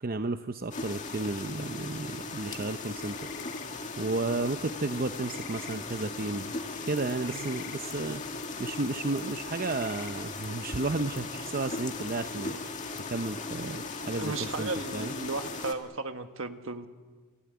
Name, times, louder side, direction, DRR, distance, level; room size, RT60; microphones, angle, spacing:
voice 1, 0.0-3.2 4.0-6.6 6.8-8.2 8.6-12.6 13.1-15.1, right 3 dB, 40° right, 8 dB, 0.7 m, -33 dB
sound 1, 0.7-15.7, left 3 dB, 35° left, 1.9 m, -38 dB
sound 2, 2.9-3.7 5.2-5.8 7.2-7.8 9.6-10.1, left 9 dB, 50° left, 1.4 m, -47 dB
voice 2, 14.1-16.9, right 3 dB, 65° right, 8 dB, 1.5 m, -35 dB
28.5 x 17.0 x 9.6 m, 1.5 s
head